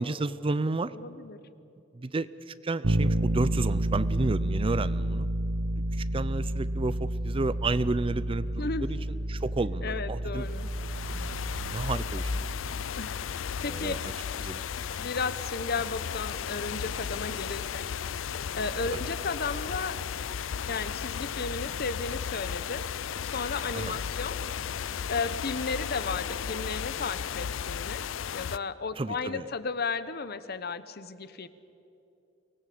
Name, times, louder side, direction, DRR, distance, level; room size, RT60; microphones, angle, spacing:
voice 1, 0.0-0.9 1.9-5.3 5.9-9.0 9.3-10.5 11.1-11.3 11.6-12.5 13.6-14.1 14.4-14.6 18.9-19.0 23.7-24.0 29.0-29.5, right 3 dB, 30° right, 16 dB, 0.5 m, -31 dB
voice 2, 0.9-1.4 8.6-8.9 9.8-10.7 13.0-14.0 15.0-17.9 18.5-20.0 20.7-22.9 23.2-24.4 25.1-28.1 28.3-31.5, left 4 dB, 55° left, 13 dB, 1.0 m, -34 dB
Bass guitar, 2.8-12.7, right 1 dB, 75° right, 1.0 m, -30 dB
sound 1, 10.4-28.6, left 7 dB, 75° left, 0.5 m, -35 dB
24.0 x 18.5 x 8.7 m, 2.9 s
head